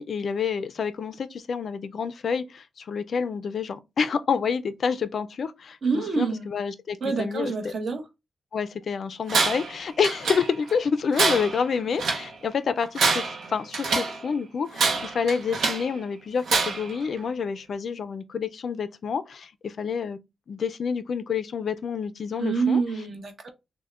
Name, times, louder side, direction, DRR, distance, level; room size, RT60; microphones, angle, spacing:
voice 1, 0.0-7.7 8.5-20.2 20.5-22.8, left 6 dB, 55° left, 0.3 m, -28 dB
voice 2, 5.8-6.5 7.0-8.0 22.4-23.5, right 4 dB, 55° right, 0.9 m, -26 dB
Tools, 9.3-9.7 10.0-10.7 11.1-12.3 12.8-14.2 14.7-15.9 16.5-17.0, right 4 dB, 90° right, 0.7 m, -25 dB
6.2 x 2.1 x 2.3 m
wide cardioid pair, 155°, 0 cm